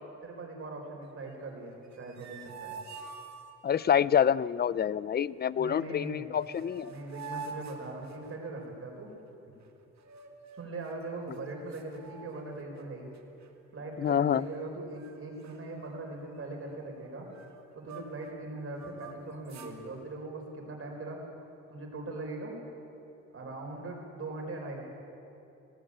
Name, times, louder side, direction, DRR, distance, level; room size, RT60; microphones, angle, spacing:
voice 1, 0.2-2.8 5.5-6.3 6.9-9.1 10.6-13.1 13.7-17.3 17.7-21.2 21.7-22.6 23.3-24.8, right 2 dB, 50° right, 1 dB, 4.9 m, -40 dB
sound 1, 1.8-3.9 6.0-6.1 6.4-8.6 10.0-10.8 11.3-11.4 11.7-12.8 13.1-13.5 14.0-14.7 15.0-15.1 15.4-18.3 18.7-19.8, right 5 dB, 70° right, 2.0 m, -47 dB
voice 2, 3.6-6.9 14.0-14.5, left 8 dB, 35° left, 19 dB, 0.4 m, -27 dB
19.0 x 17.5 x 8.8 m, 2.8 s
wide cardioid pair, 135°, 29 cm